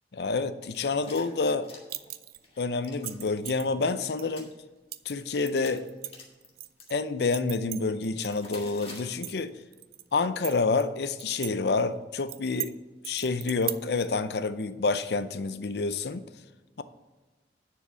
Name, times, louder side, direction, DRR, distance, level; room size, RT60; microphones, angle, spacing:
voice 1, 0.1-1.7 2.6-4.5 5.0-5.9 6.9-9.6 10.1-12.7 13.0-16.2, left 3 dB, 65° left, 12 dB, 0.5 m, -28 dB
sound 1, 0.7-2.1 2.4-3.1 3.5-3.7 4.2-4.5 5.2-5.3 5.6-6.9 8.2-9.0, left 3 dB, 35° left, 1.6 m, -46 dB
sound 2, 1.9-2.4 2.8-3.7 4.2-4.3 4.9-5.1 5.5-6.9 7.3-8.3 8.6-8.7 9.1-10.0 10.4-11.5 11.8-11.9 12.3-12.7 13.0-14.1, right 15 dB, 55° right, 0.4 m, -37 dB
10.0 x 4.6 x 6.2 m, 1.2 s
head